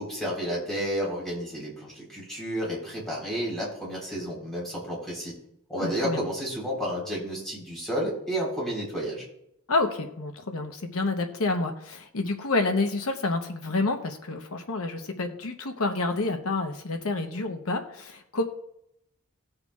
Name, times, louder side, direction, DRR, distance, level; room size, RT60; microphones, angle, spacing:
voice 1, 0.0-5.3 5.7-9.2, equal, ahead, -5 dB, 3.7 m, -31 dB
voice 2, 5.8-6.2 9.7-18.4, left 3 dB, 70° left, 5 dB, 0.9 m, -28 dB
18.5 x 6.7 x 2.4 m, 0.78 s
head